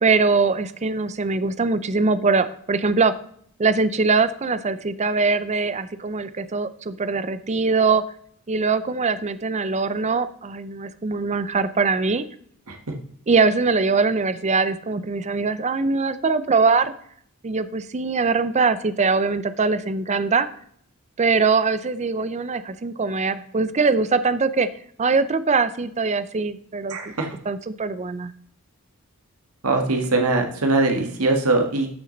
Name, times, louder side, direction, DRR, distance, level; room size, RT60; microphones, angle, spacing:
voice 1, 0.0-3.1 3.6-8.0 8.5-12.3 13.3-16.9 17.4-20.5 21.2-24.7 25.0-27.1 27.5-28.3, right 4 dB, 30° right, 13 dB, 0.5 m, -22 dB
voice 2, 26.9-27.3 29.6-31.9, right 2 dB, 75° right, 4 dB, 1.7 m, -21 dB
12.5 x 6.3 x 4.0 m, 0.63 s
head